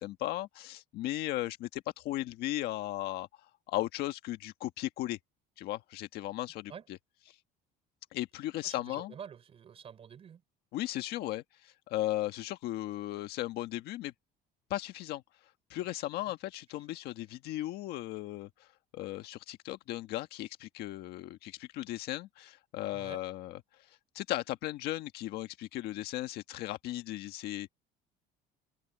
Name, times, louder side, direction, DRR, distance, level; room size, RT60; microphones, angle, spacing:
voice 1, 0.0-3.3 3.7-5.2 5.6-6.7 8.1-9.1 10.7-14.1 14.7-15.2 15.7-18.7 18.9-23.6 24.1-27.7, left 15 dB, 65° left, 1.5 m, -36 dB
voice 2, 8.6-10.4 15.9-16.0 22.9-23.2, right 8 dB, 35° right, 5.8 m, -48 dB
cardioid pair, 155°, 17 cm